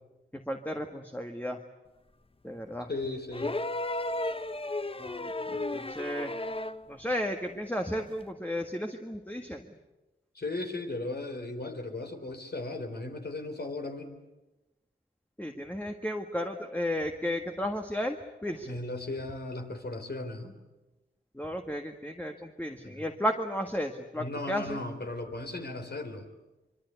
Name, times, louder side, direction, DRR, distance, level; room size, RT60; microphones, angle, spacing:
voice 1, 0.5-1.6 2.4-2.9 5.0-6.3 6.9-9.6 15.4-18.8 21.3-24.8, equal, 10° left, 3 dB, 1.8 m, -34 dB
voice 2, 2.9-3.6 10.3-14.1 18.6-20.5 22.8-23.1 24.1-26.3, left 2 dB, 55° left, 5 dB, 3.9 m, -36 dB
sound 1, 3.3-6.9 8.2-8.3, left 2 dB, 25° left, 0.9 m, -34 dB
25.0 x 23.5 x 8.2 m, 1.0 s
cardioid pair, 60°, 20 cm